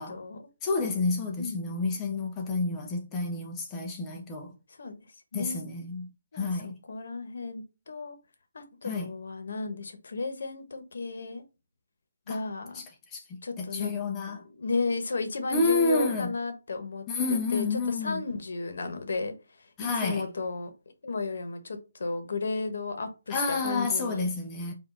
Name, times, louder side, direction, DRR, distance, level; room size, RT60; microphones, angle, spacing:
voice 1, 0.0-0.4 1.4-1.9 4.7-5.0 5.3-5.6 6.3-8.2 8.5-11.4 12.3-12.8 13.4-13.9 14.2-20.7 21.0-24.3, left 3 dB, 60° left, 1.0 m, -34 dB
voice 2, 0.6-4.5 5.3-6.1 6.3-6.8 8.8-9.1 12.3-12.4 13.1-14.4 15.5-16.3 17.1-18.2 19.8-20.3 23.3-24.7, left 3 dB, 15° left, 0.6 m, -29 dB
4.7 x 2.5 x 3.8 m
hypercardioid pair, 165°, 0 cm